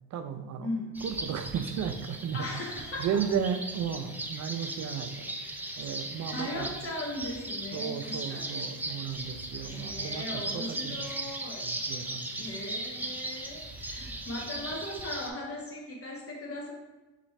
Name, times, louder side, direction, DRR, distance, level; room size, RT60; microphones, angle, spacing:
voice 1, 0.1-0.7 1.0-2.5 3.0-5.3 5.8-6.7 7.7-11.1 11.6-12.5, right 7 dB, 65° right, 8 dB, 0.5 m, -34 dB
voice 2, 0.6-0.9 2.3-3.2 6.3-8.5 9.6-11.7 12.4-16.7, left 1 dB, 50° left, -1 dB, 1.2 m, -38 dB
sound 1, 0.9-15.3, right 1 dB, 5° right, 0.4 m, -38 dB
3.2 x 3.0 x 4.3 m, 1.1 s
cardioid pair, 90°, 30 cm